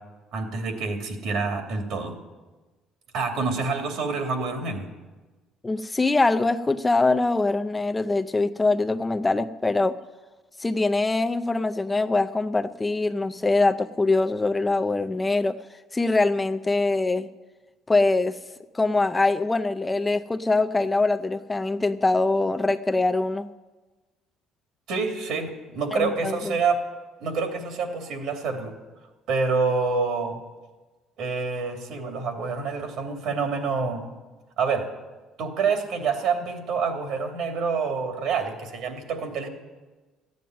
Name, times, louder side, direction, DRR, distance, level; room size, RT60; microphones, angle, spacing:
voice 1, 0.3-2.2 3.1-4.9 24.9-26.8 27.2-28.7 29.3-30.4 31.2-34.1 34.6-34.9 35.4-39.5, right 4 dB, 70° right, 4 dB, 2.7 m, -27 dB
voice 2, 5.6-10.0 10.6-15.6 15.9-17.3 17.9-18.4 18.7-23.5 25.9-26.6, left 3 dB, 15° left, 8 dB, 0.5 m, -23 dB
14.5 x 9.4 x 9.3 m, 1.2 s
cardioid pair, 110°, 0 cm